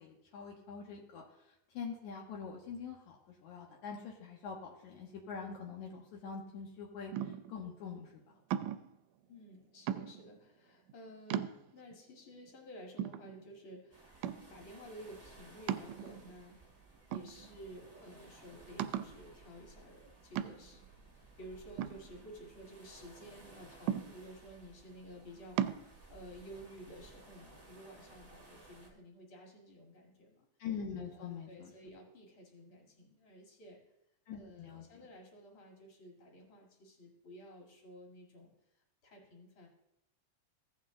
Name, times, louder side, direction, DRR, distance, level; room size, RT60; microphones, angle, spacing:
voice 1, 0.0-8.2 30.6-31.7 34.3-34.8, left 6 dB, 75° left, -1 dB, 2.2 m, -44 dB
sound 1, 7.1-7.6 8.5-8.9 9.9-10.4 10.9-11.0 11.3-11.9 12.5-12.6 13.0-13.7 14.2-14.6 15.7-16.4 17.1-17.8 18.1-18.2 18.8-19.2 20.4-20.8 21.8-22.7 23.9-24.5 25.6-25.8, right 10 dB, 80° right, 1.7 m, -37 dB
voice 2, 9.3-14.1 14.5-16.5 17.1-20.8 21.1-25.6 25.9-30.5 31.1-33.8 34.3-38.5 39.0-39.7, equal, 45° left, 0 dB, 2.6 m, -53 dB
sound 2, 13.9-28.9, right 2 dB, 35° right, 0.4 m, -58 dB
15.5 x 5.3 x 3.7 m, 0.84 s
omnidirectional pair, 3.5 m